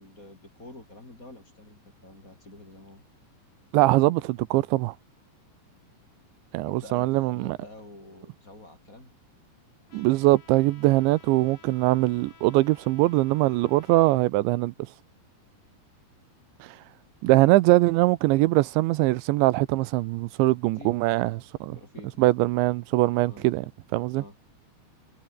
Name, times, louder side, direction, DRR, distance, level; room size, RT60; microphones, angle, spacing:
voice 1, 0.0-3.0 6.5-9.1 17.3-17.5 20.8-21.0 21.7-22.4 23.3-23.5 24.1-24.3, left 2 dB, 20° left, 4.4 m, -47 dB
voice 2, 3.7-4.9 6.5-7.6 9.9-14.7 16.6-16.8 17.2-21.8 22.2-23.7 23.9-24.2, right 19 dB, 85° right, 3.1 m, -22 dB
Trumpet, 9.9-14.2, left 6 dB, 75° left, 7.9 m, -55 dB
omnidirectional pair, 5.2 m